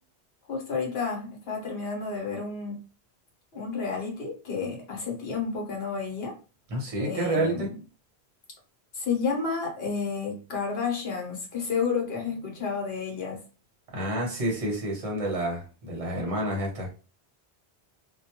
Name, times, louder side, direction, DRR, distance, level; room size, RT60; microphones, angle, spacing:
voice 1, 0.5-2.8 3.5-6.4 7.0-7.7 8.9-13.4, left 5 dB, 70° left, 0 dB, 1.0 m, -31 dB
voice 2, 6.7-7.7 13.9-16.9, right 1 dB, 35° right, -1 dB, 0.8 m, -29 dB
2.2 x 2.2 x 2.8 m, 0.34 s
omnidirectional pair, 1.1 m